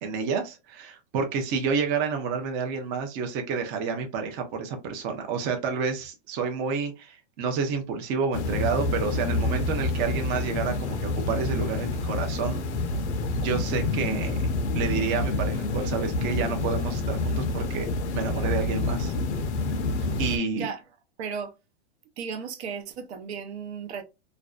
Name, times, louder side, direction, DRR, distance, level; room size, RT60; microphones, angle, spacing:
voice 1, 0.0-12.6 13.4-19.1 20.2-20.7, right 5 dB, 30° right, 0.4 m, -29 dB
sound 1, 8.3-20.4, left 2 dB, 85° left, 0.6 m, -28 dB
voice 2, 21.2-21.5 22.2-24.0, right 6 dB, 75° right, 0.7 m, -35 dB
2.5 x 2.1 x 2.3 m
supercardioid pair, 145°, 33 cm